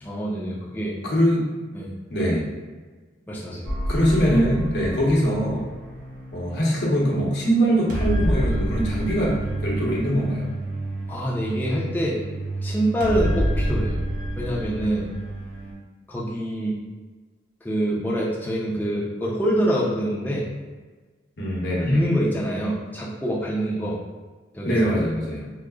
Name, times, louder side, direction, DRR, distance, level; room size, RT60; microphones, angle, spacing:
voice 1, 0.0-1.0 1.7-1.9 3.3-3.7 11.1-12.2 12.6-14.0 14.4-15.1 16.1-16.8 17.6-20.5 21.8-24.0 24.5-24.7, equal, 10° left, -6 dB, 0.4 m, -25 dB
voice 2, 1.0-1.5 2.1-2.5 3.9-5.7 6.3-10.5 21.4-22.0 24.6-25.5, equal, 75° left, -4 dB, 0.9 m, -22 dB
sound 1, 3.6-15.7, right 1 dB, 50° right, 0.6 m, -29 dB
5.0 x 2.0 x 2.3 m, 1.3 s
head